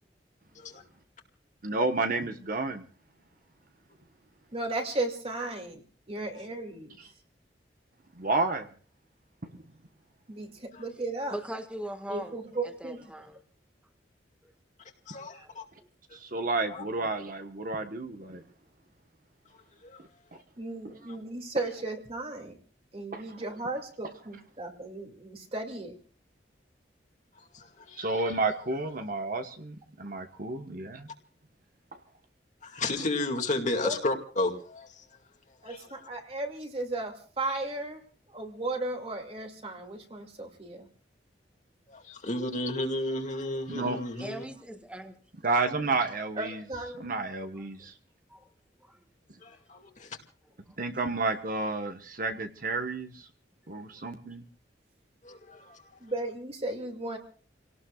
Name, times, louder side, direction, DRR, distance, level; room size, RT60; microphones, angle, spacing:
voice 1, 1.6-2.8 8.1-8.7 9.5-9.6 16.1-18.4 20.8-20.9 23.1-23.2 28.0-31.1 43.7-44.0 45.4-46.6 47.0-47.9 50.8-53.3 53.7-54.4, right 3 dB, 50° right, 1.3 m, -31 dB
voice 2, 4.5-7.0 10.3-11.4 12.1-13.1 20.6-22.6 22.9-26.0 33.8-34.0 35.6-38.0 38.3-40.9 46.3-47.0 56.0-57.2, right 2 dB, 35° right, 2.5 m, -35 dB
voice 3, 11.3-13.4 14.4-14.5 15.4-15.9 44.2-45.2 47.5-47.9 48.3-48.5 48.8-49.0 50.7-50.8, right 1 dB, 5° right, 1.7 m, -41 dB
voice 4, 15.1-15.6 16.7-16.8 19.8-20.0 27.4-28.4 32.6-35.0 35.7-35.8 41.9-44.4 49.4-50.2 55.2-56.0, left 2 dB, 45° left, 2.3 m, -33 dB
29.5 x 18.0 x 2.4 m
head